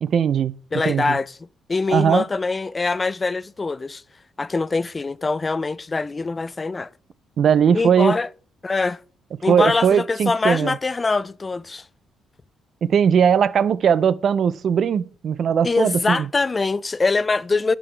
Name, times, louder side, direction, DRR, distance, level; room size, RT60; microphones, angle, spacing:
voice 1, 0.0-0.5 0.9-1.2 1.9-2.2 7.4-8.1 9.5-10.8 12.8-16.3, right 7 dB, 60° right, 0.4 m, -19 dB
voice 2, 0.7-1.4 1.7-4.0 4.4-6.9 7.7-8.3 8.6-9.0 9.4-11.8 15.6-17.8, left 3 dB, 30° left, 0.4 m, -23 dB
10.5 x 5.9 x 3.3 m
cardioid pair, 85°, 0 cm